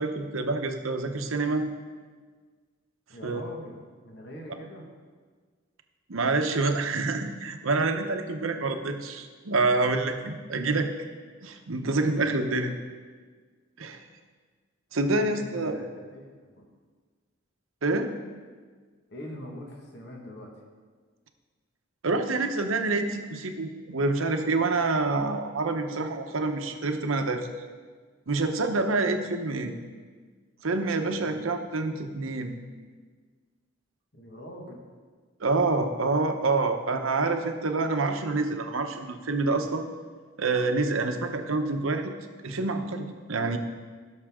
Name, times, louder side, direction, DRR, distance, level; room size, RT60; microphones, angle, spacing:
voice 1, 0.0-1.7 3.2-3.4 6.1-10.9 11.4-12.7 13.8-14.0 14.9-15.8 17.8-18.1 22.0-27.5 28.3-29.7 30.6-32.6 35.4-39.8 40.4-42.1 42.4-43.6, right 3 dB, 90° right, 6 dB, 0.9 m, -27 dB
voice 2, 3.1-3.8 4.0-4.9 12.3-12.8 15.1-16.7 19.1-20.5 29.2-29.3 31.1-31.4 34.1-34.9, equal, 55° left, 0 dB, 1.7 m, -42 dB
17.0 x 6.5 x 3.7 m, 1.5 s
head